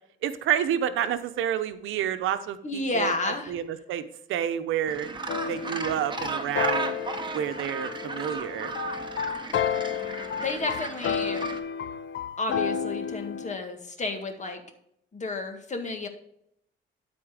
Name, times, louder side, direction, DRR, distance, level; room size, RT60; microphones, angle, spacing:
voice 1, 0.2-5.1 5.5-7.0 7.3-8.7, right 10 dB, 85° right, 10 dB, 0.8 m, -29 dB
voice 2, 2.6-3.5 10.4-11.5 12.4-14.6 15.1-16.1, left 3 dB, 35° left, 5 dB, 1.8 m, -31 dB
Gull seagull, 4.9-11.6, right 4 dB, 25° right, 1.2 m, -35 dB
sound 1, 5.3-13.6, left 8 dB, 70° left, 0.6 m, -31 dB
12.5 x 4.4 x 5.0 m, 0.74 s
cardioid pair, 90°, 20 cm